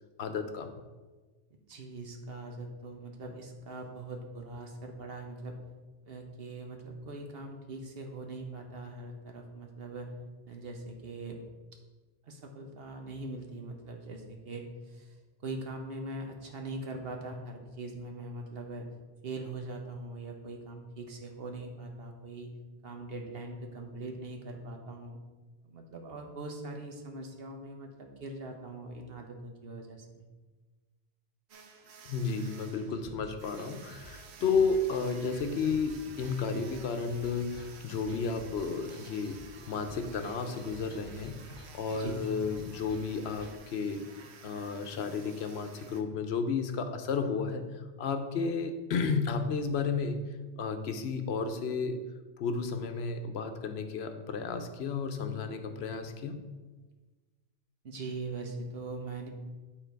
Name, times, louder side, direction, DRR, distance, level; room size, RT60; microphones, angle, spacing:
voice 1, 0.2-0.8 32.0-41.4 41.7-44.1 44.4-50.2 50.6-52.0 52.4-56.4, left 5 dB, 80° left, 7 dB, 0.9 m, -32 dB
voice 2, 1.7-5.6 6.0-10.1 10.5-11.4 12.3-15.2 15.4-18.9 19.2-22.5 22.8-25.2 25.6-30.3 42.0-42.2 57.8-59.3, right 2 dB, 65° right, 3 dB, 1.2 m, -41 dB
sound 1, 31.5-46.0, right 5 dB, 90° right, 0.9 m, -53 dB
sound 2, 32.9-43.6, right 1 dB, 25° right, 1.0 m, -52 dB
9.1 x 3.8 x 4.6 m, 1.3 s
omnidirectional pair, 1.1 m